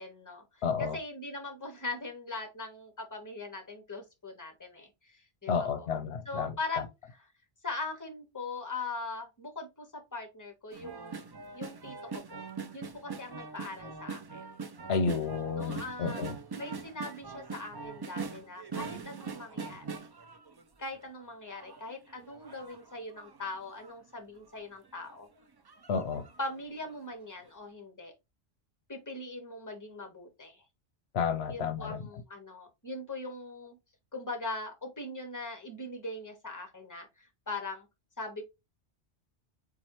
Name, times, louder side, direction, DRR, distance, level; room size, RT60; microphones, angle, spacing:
voice 1, 0.0-5.9 6.2-7.3 7.6-11.2 11.5-12.4 12.7-14.5 15.6-16.3 16.5-20.1 20.8-25.3 26.4-28.1 28.9-30.6 31.5-33.8 34.1-37.9 38.2-38.4, left 2 dB, 15° left, 1.1 m, -41 dB
voice 2, 0.6-1.0 5.5-6.5 14.9-16.3 25.9-26.2 31.1-32.0, left 6 dB, 75° left, 0.9 m, -31 dB
sound 1, 10.7-21.1 21.5-23.9 24.5-24.6 24.8-25.1 25.7-26.6 27.0-27.1, right 5 dB, 40° right, 0.3 m, -42 dB
7.3 x 2.4 x 3.0 m
omnidirectional pair, 1.1 m